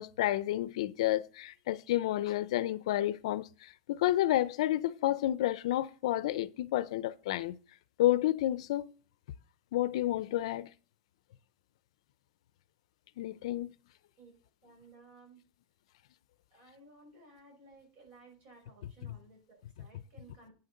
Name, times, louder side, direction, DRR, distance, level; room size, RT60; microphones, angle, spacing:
voice 1, 0.0-7.6 8.0-8.9 9.7-10.7 13.2-13.7, left 14 dB, 70° left, 0.5 m, -30 dB
voice 2, 14.6-15.4 16.5-20.5, right 3 dB, 45° right, 5.5 m, -57 dB
9.1 x 6.6 x 5.3 m
supercardioid pair, 160°, 3 cm